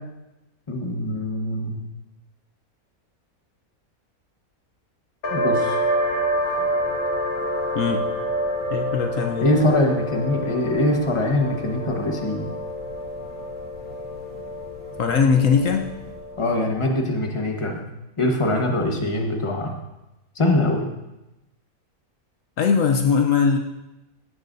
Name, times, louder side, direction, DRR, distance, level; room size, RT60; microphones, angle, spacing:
voice 1, 0.7-1.8 5.3-5.8 9.4-12.5 16.4-17.9 18.2-19.7 20.4-20.9, left 1 dB, 20° left, 2 dB, 1.3 m, -23 dB
sound 1, 5.2-16.5, equal, 85° left, 2.3 m, -28 dB
voice 2, 8.7-9.5 15.0-15.8 22.6-23.6, left 6 dB, 70° left, 4 dB, 1.1 m, -20 dB
16.5 x 11.0 x 2.7 m, 0.96 s
omnidirectional pair, 1.5 m